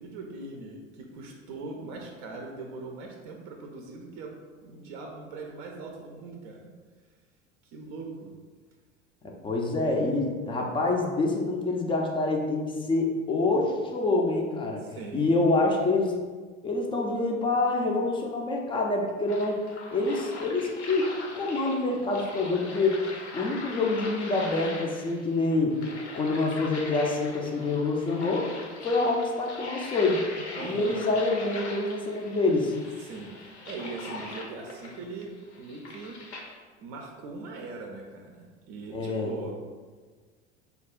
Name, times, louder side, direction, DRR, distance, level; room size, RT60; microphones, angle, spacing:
voice 1, 0.0-4.3 4.6-6.7 7.6-8.3 14.8-15.3 30.6-30.9 33.0-36.2 36.8-39.5, right 3 dB, 50° right, 1 dB, 0.5 m, -41 dB
voice 2, 9.2-14.8 15.1-16.2 16.6-19.6 19.9-23.0 23.3-25.7 26.1-28.5 28.8-30.2 30.6-32.7 38.9-39.3, left 2 dB, 15° left, 1 dB, 0.4 m, -26 dB
sound 1, 19.3-36.5, left 3 dB, 75° left, 0.7 m, -41 dB
3.4 x 2.3 x 3.6 m, 1.5 s
figure-of-eight pair, 70°, 35 cm